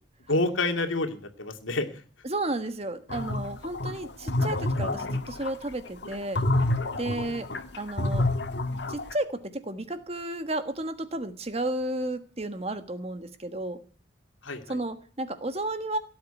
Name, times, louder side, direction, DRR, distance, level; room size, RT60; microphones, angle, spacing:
voice 1, 0.3-2.0 7.2-7.5 14.4-14.8, left 2 dB, 85° left, 6 dB, 2.4 m, -29 dB
voice 2, 2.2-6.4 6.9-7.5 7.8-8.3 8.9-13.8 14.7-16.0, right 1 dB, 30° right, 10 dB, 1.4 m, -32 dB
sound 1, 3.1-9.1, left 2 dB, 60° left, 1.5 m, -28 dB
17.5 x 8.1 x 9.9 m, 0.43 s
head